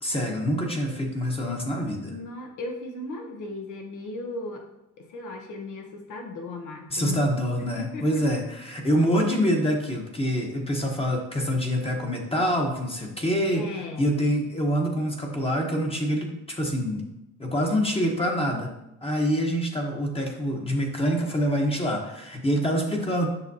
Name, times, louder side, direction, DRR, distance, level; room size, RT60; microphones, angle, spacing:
voice 1, 0.0-2.2 6.9-13.7 14.0-17.0 17.4-18.7 19.0-23.3, equal, 20° left, 1 dB, 1.1 m, -26 dB
voice 2, 2.1-4.6 5.0-7.2 7.6-8.2 13.5-14.1, left 2 dB, 85° left, 2 dB, 1.2 m, -36 dB
7.0 x 5.8 x 2.8 m, 0.90 s
cardioid pair, 90°, 30 cm